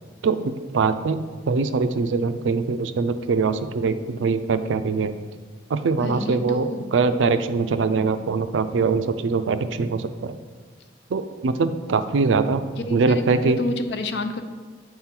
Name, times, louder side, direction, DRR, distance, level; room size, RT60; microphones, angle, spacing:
voice 1, 0.2-1.2 1.5-5.1 5.7-10.4 11.1-12.6 12.9-13.6, right 4 dB, 85° right, 11 dB, 0.4 m, -22 dB
voice 2, 6.0-6.9 12.8-14.4, left 2 dB, 65° left, 8 dB, 0.5 m, -29 dB
8.7 x 3.7 x 4.4 m, 1.4 s
head